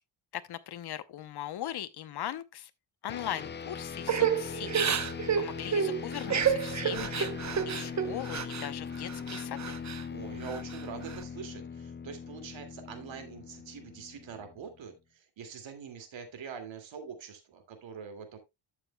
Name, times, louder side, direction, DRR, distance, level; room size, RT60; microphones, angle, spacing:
voice 1, 0.3-2.7 3.0-4.9 5.3-7.3 7.7-9.8, left 11 dB, 55° left, 0.8 m, -39 dB
sound 1, 3.1-14.8, left 6 dB, 25° left, 0.5 m, -40 dB
Crying sobbing / Breathing, 4.1-8.7 9.1-10.0 10.4-11.2, right 7 dB, 35° right, 0.8 m, -30 dB
voice 2, 10.1-18.4, right 6 dB, 70° right, 2.4 m, -44 dB
12.0 x 7.4 x 2.2 m
cardioid pair, 115°, 47 cm